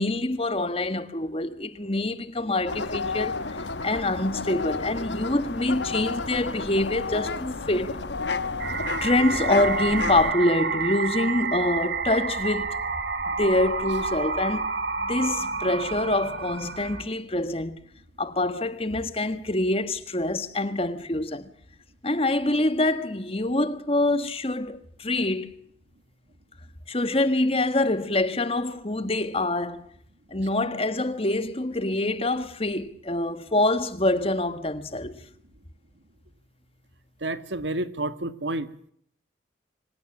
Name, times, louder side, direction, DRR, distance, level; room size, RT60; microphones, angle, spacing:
voice 1, 0.0-3.4 3.8-8.0 9.0-12.7 13.4-14.7 15.1-17.8 18.2-21.5 22.0-25.5 26.9-29.8 30.3-35.2, left 2 dB, 30° left, 1.5 m, -25 dB
sound 1, 2.7-10.3, left 3 dB, 75° left, 1.3 m, -31 dB
sound 2, 8.6-17.0, right 4 dB, 60° right, 2.3 m, -29 dB
voice 2, 37.2-38.7, right 2 dB, 80° right, 1.8 m, -30 dB
26.0 x 16.5 x 7.3 m
head